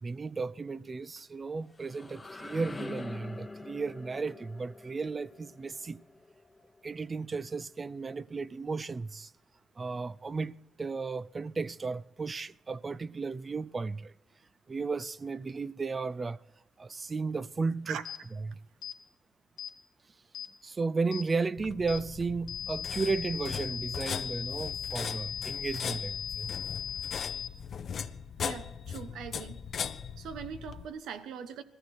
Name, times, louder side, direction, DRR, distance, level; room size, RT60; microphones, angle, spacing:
voice 1, 0.0-6.0 6.8-9.3 9.8-14.1 14.7-16.4 16.8-18.0 18.3-18.5 20.6-26.5, right 4 dB, 30° right, 0.5 m, -34 dB
sound 1, 1.4-7.2, left 3 dB, 20° left, 0.9 m, -45 dB
sound 2, 18.0-18.2 18.8-19.0 19.6-19.7 20.3-20.5 21.1-21.3 21.9-22.0 22.5-27.5, left 9 dB, 85° left, 1.5 m, -38 dB
sound 3, 21.6-30.9, left 7 dB, 55° left, 0.7 m, -39 dB
voice 2, 28.4-29.6 30.2-31.6, right 7 dB, 80° right, 1.1 m, -41 dB
21.0 x 14.5 x 4.4 m
cardioid pair, 90°, 0 cm